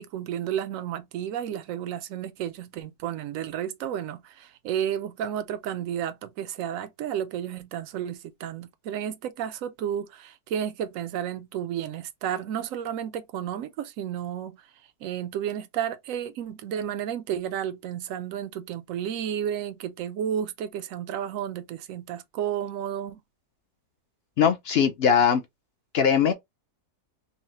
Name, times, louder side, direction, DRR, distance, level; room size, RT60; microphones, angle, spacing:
voice 1, 0.0-14.7 15.0-23.2, right 9 dB, 70° right, 0.9 m, -32 dB
voice 2, 24.4-25.4 25.9-26.3, left 7 dB, 60° left, 0.6 m, -20 dB
5.5 x 2.0 x 2.7 m
omnidirectional pair, 1.6 m